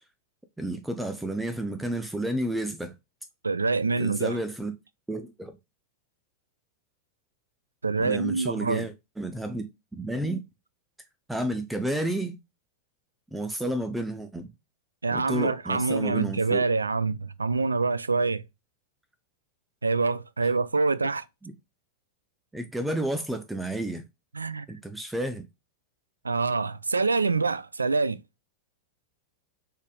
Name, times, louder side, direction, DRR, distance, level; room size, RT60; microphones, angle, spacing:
voice 1, 0.6-2.9 4.0-4.7 5.1-5.6 8.0-9.6 9.9-10.4 11.3-12.4 13.3-14.5 15.1-16.7 21.4-21.5 22.5-24.0 24.7-25.5, right 1 dB, 5° right, 0.6 m, -31 dB
voice 2, 3.4-4.4 7.8-8.9 15.0-18.4 19.8-21.2 24.3-24.7 26.2-28.2, right 4 dB, 80° right, 0.3 m, -26 dB
6.4 x 3.5 x 2.2 m
figure-of-eight pair, 90°, 0 cm